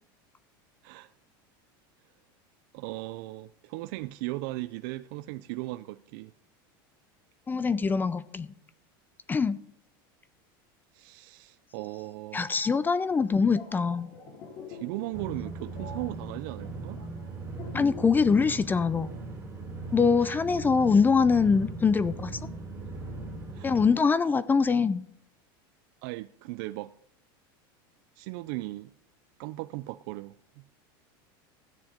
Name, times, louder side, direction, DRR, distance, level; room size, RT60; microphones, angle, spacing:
voice 1, 2.7-6.3 10.9-12.5 14.7-17.0 20.2-20.4 23.5-23.8 26.0-27.0 28.2-28.9 29.4-30.8, right 19 dB, 65° right, 0.5 m, -37 dB
voice 2, 7.5-8.5 9.3-9.6 12.3-14.1 17.7-19.1 19.9-22.4 23.6-25.0, left 5 dB, 15° left, 0.5 m, -23 dB
sound 1, 13.4-18.2 18.4-18.7, left 5 dB, 50° left, 3.4 m, -45 dB
sound 2, 15.1-23.9, right 3 dB, 20° right, 3.5 m, -39 dB
13.5 x 9.2 x 5.1 m
supercardioid pair, 130°, 12 cm